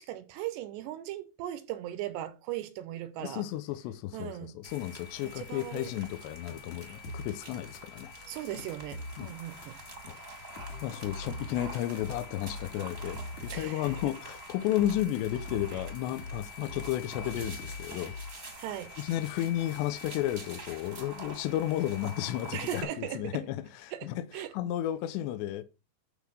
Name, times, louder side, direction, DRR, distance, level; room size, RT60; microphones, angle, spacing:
voice 1, 0.0-3.5 4.1-4.5 5.2-5.9 8.3-9.8 10.1-10.4 13.5-14.0 15.7-15.8 18.6-19.0 22.5-23.5 23.9-24.5, right 13 dB, 75° right, 2.7 m, -38 dB
voice 2, 3.2-8.1 9.2-9.3 10.1-10.2 10.5-18.1 18.4-18.6 19.0-25.6, left 13 dB, 80° left, 2.9 m, -33 dB
sound 1, 4.6-22.8, equal, 30° right, 1.2 m, -46 dB
sound 2, 6.5-10.0 10.6-14.2 14.8-18.5, left 2 dB, 50° left, 2.6 m, -42 dB
12.0 x 3.9 x 6.2 m
omnidirectional pair, 5.3 m